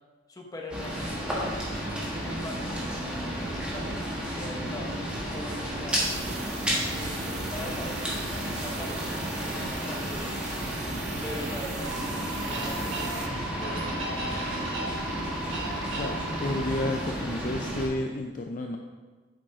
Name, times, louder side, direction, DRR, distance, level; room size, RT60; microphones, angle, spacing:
voice 1, 0.3-1.5 2.0-6.1 6.8-10.3 11.2-14.3, left 1 dB, 20° left, 1 dB, 0.9 m, -42 dB
sound 1, 0.7-17.9, equal, 5° right, 1.6 m, -32 dB
sound 2, 5.9-13.3, right 7 dB, 40° right, 0.5 m, -43 dB
sound 3, 11.8-16.9, right 2 dB, 90° right, 1.6 m, -36 dB
voice 2, 16.0-18.8, left 1 dB, 45° left, 3 dB, 0.4 m, -31 dB
7.3 x 5.0 x 4.7 m, 1.4 s
head